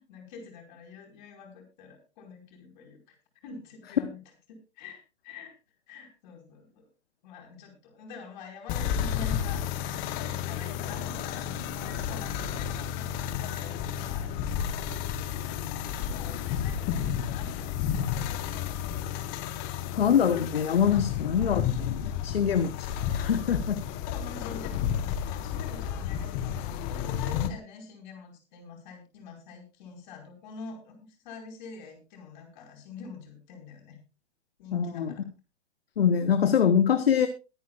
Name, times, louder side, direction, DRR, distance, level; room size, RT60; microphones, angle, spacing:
voice 1, 0.0-3.1 3.4-4.2 4.5-5.5 5.9-6.9 7.2-15.0 15.4-18.6 21.1-21.4 24.0-31.0 31.2-34.0 34.6-35.2, left 5 dB, 40° left, 2 dB, 5.1 m, -46 dB
sound 1, 8.7-27.5, left 9 dB, 25° left, 1.1 m, -32 dB
voice 2, 20.0-23.8 34.7-35.1 36.0-37.3, left 8 dB, 60° left, 10 dB, 1.2 m, -24 dB
22.0 x 9.4 x 2.4 m, 0.30 s
figure-of-eight pair, 115°, 34 cm